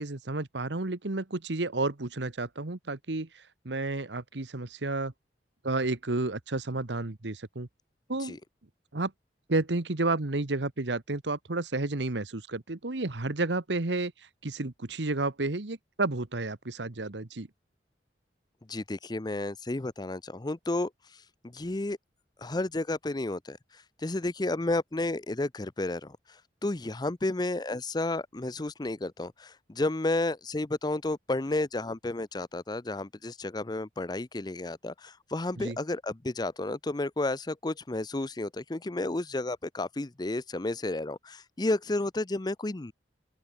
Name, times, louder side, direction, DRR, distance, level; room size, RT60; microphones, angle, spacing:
voice 1, 0.0-5.1 5.6-7.7 8.1-8.4 8.9-9.1 9.5-14.1 14.4-17.5 35.6-35.8, right 2 dB, 85° right, 1.4 m, -31 dB
voice 2, 18.7-20.9 21.4-22.0 22.4-23.6 24.0-26.2 26.6-42.9, left 2 dB, 25° left, 0.6 m, -32 dB
open air
head